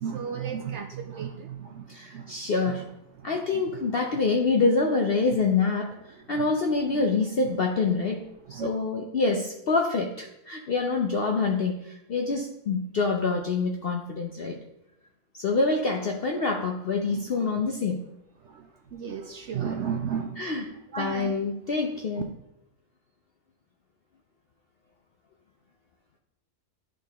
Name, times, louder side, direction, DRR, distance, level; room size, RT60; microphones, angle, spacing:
voice 1, 0.0-1.8 2.1-2.3 2.7-2.8 3.5-3.6 3.9-4.0 6.4-6.5 6.9-7.0 8.5-8.7 17.1-17.5 18.5-18.6 18.9-20.6 20.9-21.4, right 7 dB, 70° right, 5 dB, 0.7 m, -34 dB
voice 2, 1.9-2.8 3.2-6.0 6.3-14.6 15.4-18.0 20.4-20.7 21.0-22.3, left 4 dB, 65° left, 1 dB, 0.6 m, -26 dB
11.0 x 3.7 x 3.4 m, 0.85 s
omnidirectional pair, 1.6 m